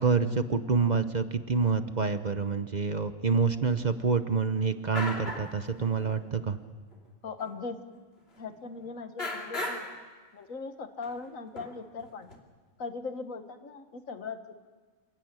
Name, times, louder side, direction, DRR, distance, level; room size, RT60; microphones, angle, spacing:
voice 1, 0.0-6.6, right 5 dB, 40° right, 10 dB, 0.9 m, -27 dB
sound 1, 4.6-4.7 4.9-5.6 5.8-6.2 6.9-7.0 7.4-7.5 8.8-8.9 9.2-10.0 11.0-11.1 11.6-12.4, left 2 dB, 50° left, 2.9 m, -36 dB
voice 2, 7.2-7.8 8.4-9.9 10.3-12.3 12.8-14.5, left 4 dB, 85° left, 8 dB, 1.9 m, -39 dB
27.0 x 16.0 x 9.0 m, 1.4 s
omnidirectional pair, 1.3 m